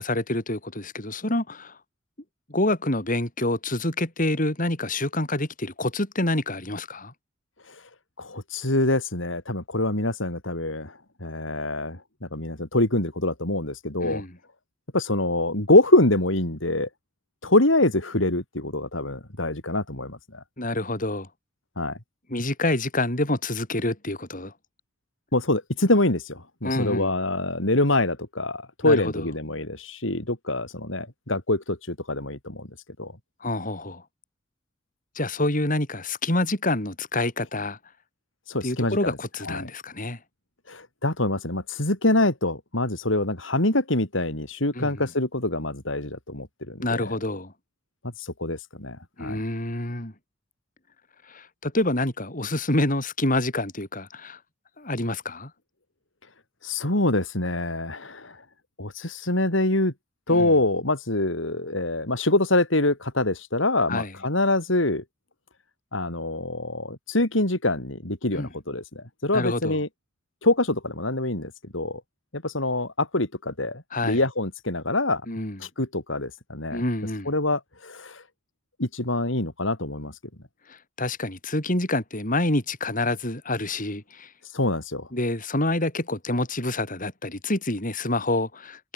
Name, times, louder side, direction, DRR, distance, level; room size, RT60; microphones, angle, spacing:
voice 1, 0.0-1.7 2.5-7.1 14.0-14.3 20.6-21.3 22.3-24.5 26.6-27.1 28.8-29.2 33.4-34.0 35.1-37.8 38.6-40.2 44.7-45.0 46.8-47.5 49.2-50.1 51.3-54.4 54.8-55.5 60.3-60.5 63.9-64.1 68.3-68.5 69.3-69.8 73.9-74.2 75.3-75.6 76.7-77.3 80.7-84.3 85.1-88.9, left 2 dB, 45° left, 6.8 m, -27 dB
voice 2, 8.2-14.2 14.9-16.9 17.4-20.4 21.8-22.0 25.3-32.7 33.0-33.1 38.5-39.2 39.4-39.7 40.7-47.2 48.2-49.4 56.6-58.4 58.8-59.9 60.3-65.0 65.9-69.9 70.4-72.0 72.3-75.2 75.6-76.8 77.2-78.2 78.8-80.1 84.5-85.1, left 2 dB, 75° left, 4.7 m, -25 dB
head